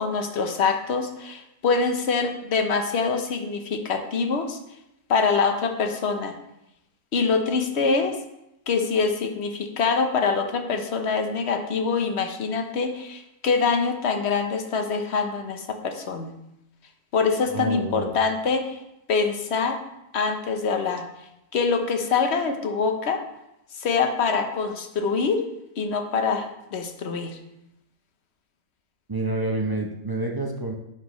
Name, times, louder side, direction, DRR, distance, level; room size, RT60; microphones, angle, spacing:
voice 1, 0.0-4.6 5.1-6.3 7.1-8.1 8.7-16.3 17.1-18.8 19.1-19.8 20.1-21.0 21.5-23.2 23.8-25.4 25.8-27.4, left 5 dB, 55° left, 5 dB, 1.0 m, -24 dB
voice 2, 17.5-18.2 29.1-30.7, right 2 dB, 30° right, 0 dB, 0.4 m, -28 dB
10.0 x 6.0 x 3.1 m, 0.86 s
omnidirectional pair, 1.6 m